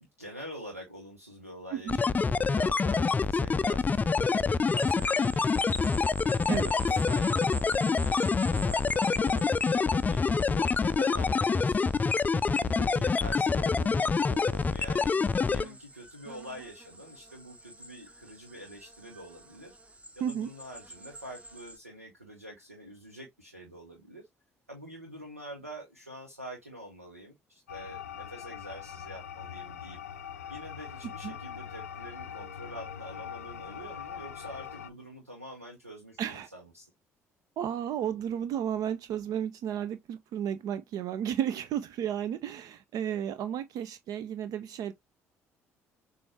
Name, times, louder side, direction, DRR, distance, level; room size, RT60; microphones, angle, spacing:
voice 1, 0.2-15.2 15.5-24.2 24.7-30.0 30.5-36.9, equal, 90° right, 0.8 m, -46 dB
sound 1, 1.9-15.6, left 4 dB, 20° left, 0.3 m, -26 dB
sound 2, 4.7-21.8, right 1 dB, 15° right, 1.1 m, -46 dB
sound 3, 27.7-34.9, left 8 dB, 80° left, 0.5 m, -42 dB
voice 2, 36.2-36.5 37.6-44.9, right 9 dB, 50° right, 0.4 m, -33 dB
6.8 x 2.4 x 3.1 m
figure-of-eight pair, 50°, 8 cm